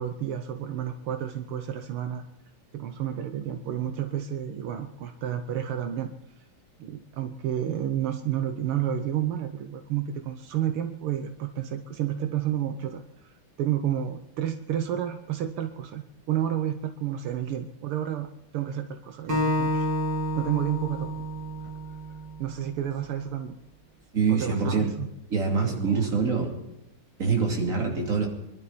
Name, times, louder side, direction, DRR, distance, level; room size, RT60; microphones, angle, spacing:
voice 1, 0.0-2.2 2.7-6.1 6.8-18.3 18.5-19.9 20.4-21.1 22.4-23.6 24.3-25.1 25.6-26.1, right 10 dB, 80° right, 7 dB, 1.8 m, -31 dB
Acoustic guitar, 19.3-22.6, equal, 55° right, 3.9 m, -29 dB
voice 2, 24.1-24.9 25.3-26.5 27.2-28.3, right 5 dB, 35° right, 1 dB, 3.2 m, -25 dB
24.0 x 12.0 x 4.2 m, 0.87 s
omnidirectional pair, 2.4 m